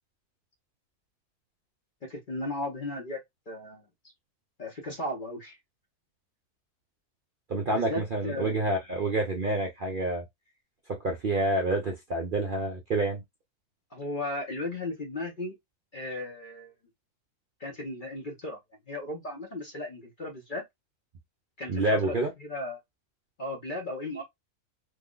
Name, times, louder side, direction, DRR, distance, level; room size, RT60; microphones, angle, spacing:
voice 1, 2.0-4.1 4.6-5.6 7.7-8.5 13.9-15.6 15.9-16.7 17.6-18.6 18.9-20.6 21.6-22.8 23.4-24.2, left 2 dB, 45° left, 0.7 m, -36 dB
voice 2, 7.5-10.2 11.0-13.2 21.7-22.3, right 2 dB, 50° right, 0.6 m, -28 dB
3.2 x 2.1 x 3.7 m
omnidirectional pair, 1.6 m